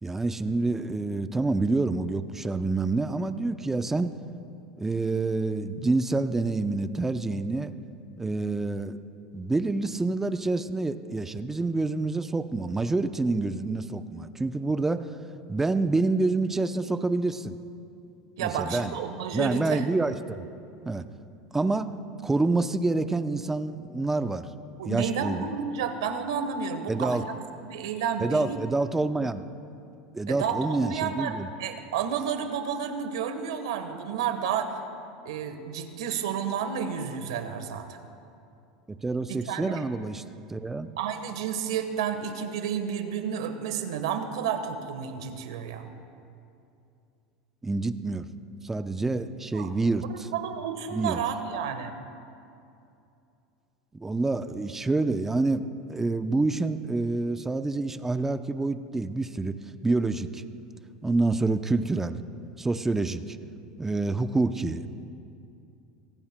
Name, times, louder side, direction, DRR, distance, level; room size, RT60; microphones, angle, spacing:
voice 1, 0.0-4.1 4.8-7.7 8.2-9.0 9.3-15.1 15.5-17.6 18.4-18.9 19.3-20.5 20.8-21.1 21.5-24.5 24.9-25.5 26.9-27.2 28.2-29.4 30.1-31.5 39.0-40.2 40.5-40.9 47.6-48.3 48.6-50.3 50.9-51.2 53.9-60.4 61.0-62.2 62.6-63.4 63.8-64.9, right 3 dB, 10° right, 10 dB, 0.7 m, -27 dB
voice 2, 18.4-19.9 24.8-27.4 27.6-28.6 30.3-34.7 35.2-38.0 39.3-39.8 41.0-45.9 49.5-49.7 50.1-51.9, right 7 dB, 80° right, 7 dB, 1.3 m, -31 dB
24.0 x 17.5 x 2.3 m, 2.6 s
hypercardioid pair, 100°, 3 cm